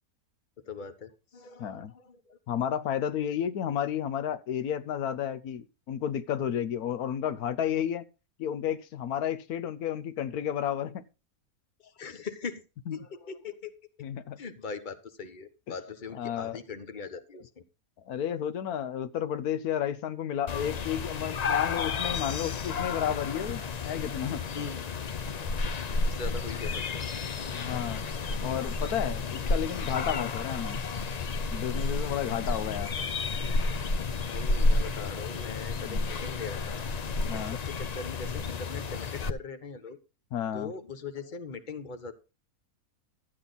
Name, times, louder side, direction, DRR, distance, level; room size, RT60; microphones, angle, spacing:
voice 1, 0.6-2.4 11.8-12.6 12.9-13.7 14.4-17.6 24.5-24.8 25.9-27.0 27.4-28.0 30.1-30.3 34.3-36.9 37.3-40.0 40.4-42.1, left 5 dB, 35° left, 1.3 m, -41 dB
voice 2, 1.6-1.9 2.5-8.1 8.4-11.0 12.9-13.0 14.0-14.4 16.1-16.6 18.0-24.4 27.5-28.0 28.4-30.8 31.5-32.9 35.9-36.0 37.3-37.6 40.3-40.7, left 9 dB, 85° left, 1.3 m, -32 dB
sound 1, 20.5-39.3, left 3 dB, 55° left, 0.4 m, -31 dB
12.5 x 8.7 x 4.0 m
omnidirectional pair, 1.5 m